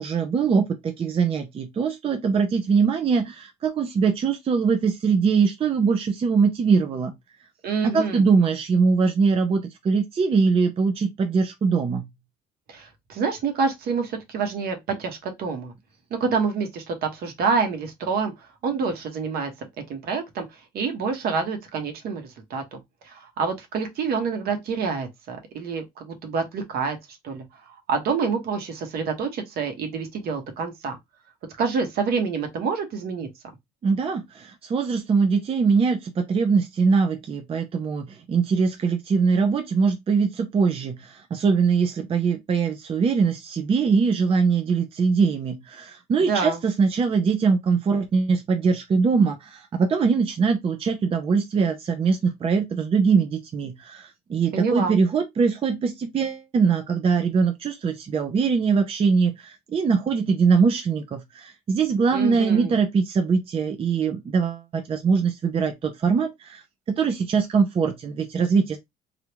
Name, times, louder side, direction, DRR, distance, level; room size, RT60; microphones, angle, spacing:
voice 1, 0.0-7.1 7.8-12.0 33.8-68.8, right 5 dB, 35° right, 0.5 m, -22 dB
voice 2, 7.6-8.2 12.7-15.7 16.1-20.5 20.7-22.2 22.5-22.8 23.0-27.0 27.2-27.4 27.9-31.0 31.6-33.3 46.3-46.6 54.5-54.9 62.1-62.7, right 5 dB, 65° right, 1.1 m, -27 dB
3.4 x 2.4 x 3.0 m
cardioid pair, 110°, 17 cm